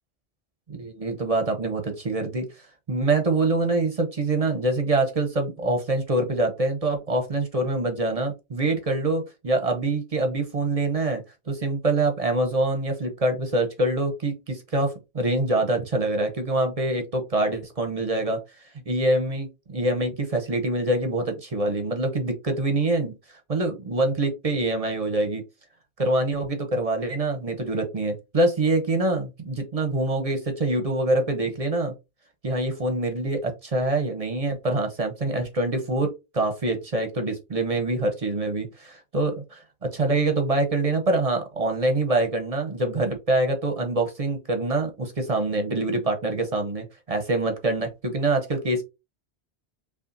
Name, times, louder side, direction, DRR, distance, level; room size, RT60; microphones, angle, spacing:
voice 1, 0.7-2.5 2.9-18.4 18.9-23.1 23.5-25.4 26.0-31.9 32.4-48.8, right 2 dB, 40° right, 5 dB, 0.7 m, -25 dB
5.4 x 2.4 x 2.6 m, 0.24 s
omnidirectional pair, 1.1 m